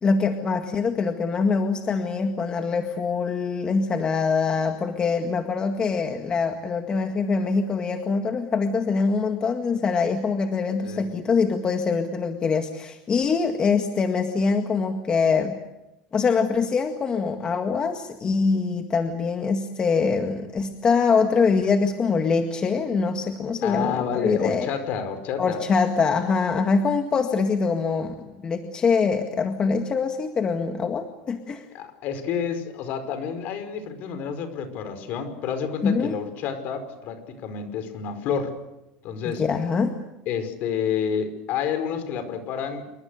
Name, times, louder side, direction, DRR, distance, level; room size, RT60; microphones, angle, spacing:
voice 1, 0.0-15.6 16.1-24.7 25.4-28.1 28.4-31.7 35.8-36.1 39.3-40.0, left 5 dB, 25° left, 5 dB, 1.9 m, -24 dB
voice 2, 23.6-25.6 31.7-38.5 39.0-39.4 40.3-42.9, left 7 dB, 55° left, 10 dB, 5.3 m, -29 dB
27.5 x 24.0 x 6.6 m, 0.93 s
cardioid pair, 145°, 4 cm